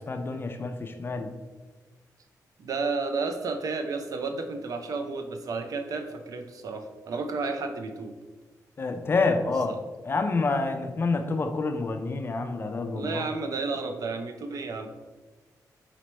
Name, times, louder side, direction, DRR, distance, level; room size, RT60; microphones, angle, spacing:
voice 1, 0.0-1.3 8.8-9.8 10.0-13.2, left 3 dB, 35° left, 6 dB, 0.4 m, -28 dB
voice 2, 2.6-8.1 9.7-9.8 12.9-14.9, right 4 dB, 60° right, 6 dB, 0.4 m, -32 dB
4.3 x 3.0 x 3.1 m, 1.2 s
cardioid pair, 110°, 7 cm